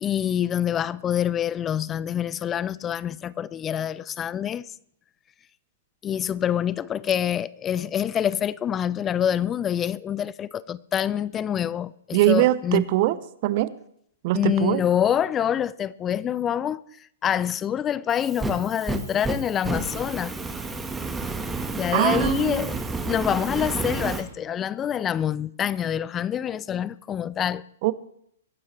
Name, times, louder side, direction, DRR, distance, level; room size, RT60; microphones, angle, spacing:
voice 1, 0.0-4.6 6.0-12.9 14.3-16.8 17.2-20.3 21.8-22.8 23.1-27.6, left 9 dB, 20° left, 0.5 m, -26 dB
voice 2, 12.1-13.2 13.4-13.7 14.2-14.8 21.9-22.8 27.8-27.9, right 15 dB, 45° right, 0.8 m, -22 dB
Fire, 18.1-24.2, right 3 dB, 10° right, 1.5 m, -30 dB
23.0 x 12.0 x 3.4 m
hypercardioid pair, 120°, 0 cm